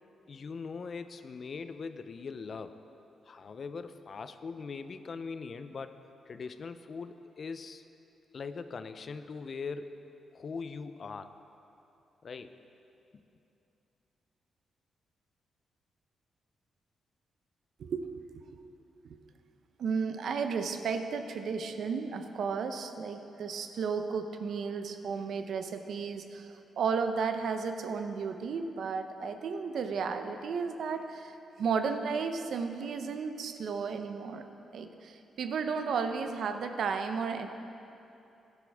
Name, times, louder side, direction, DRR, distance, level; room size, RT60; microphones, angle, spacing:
voice 1, 0.3-2.7 3.2-6.0 6.3-7.8 8.3-10.0 10.3-11.3 12.2-12.6, left 5 dB, 55° left, 10 dB, 0.5 m, -41 dB
voice 2, 19.8-34.4 34.7-37.5, right 5 dB, 70° right, 7 dB, 0.7 m, -33 dB
15.0 x 10.0 x 3.5 m, 2.8 s
cardioid pair, 70°, 0 cm